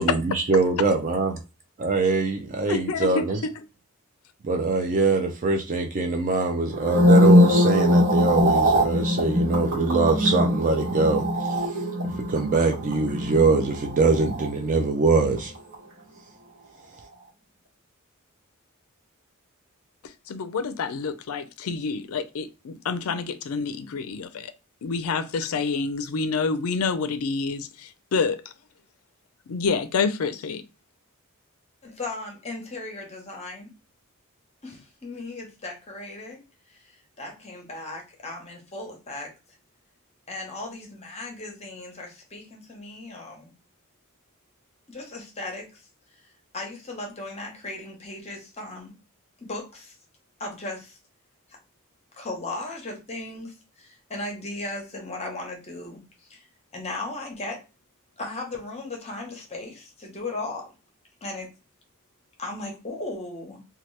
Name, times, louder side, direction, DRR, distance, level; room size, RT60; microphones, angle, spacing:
voice 1, 0.0-1.4 1.8-3.4 4.4-11.5 12.2-15.5, right 3 dB, 35° right, 0.4 m, -23 dB
voice 2, 2.7-3.2 20.3-24.5 24.8-28.4 29.5-30.6, left 4 dB, 70° left, 0.4 m, -28 dB
sound 1, 6.7-15.1 15.4-15.7, left 1 dB, 55° right, 1.1 m, -22 dB
voice 3, 31.8-33.7 34.6-36.4 36.8-39.3 40.3-43.5 44.9-45.9 46.5-48.9 49.4-50.0 50.4-51.0 52.1-56.5 56.7-57.6 58.2-60.7 61.2-61.5 62.4-63.6, left 2 dB, 30° left, 0.8 m, -36 dB
2.8 x 2.3 x 3.1 m
head